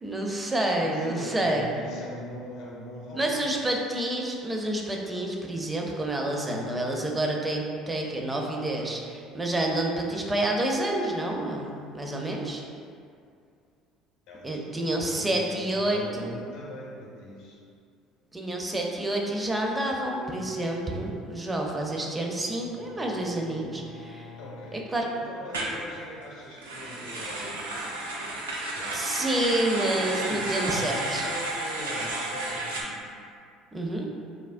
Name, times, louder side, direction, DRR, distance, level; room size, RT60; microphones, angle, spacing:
voice 1, 0.0-1.7 3.1-12.6 14.4-16.3 18.3-24.3 24.7-25.1 28.9-31.3 33.7-34.1, right 1 dB, 20° right, 0 dB, 0.4 m, -28 dB
voice 2, 0.8-3.4 14.3-17.6 24.4-28.2 28.7-29.1 29.9-33.0, left 1 dB, 65° left, -4 dB, 0.7 m, -41 dB
Bowed string instrument, 21.1-24.9, left 4 dB, 90° left, 0.3 m, -50 dB
sound 1, 25.5-25.8 26.5-32.8, right 2 dB, 90° right, 0.4 m, -32 dB
3.4 x 2.0 x 2.5 m, 2.3 s
hypercardioid pair, 65°, 0 cm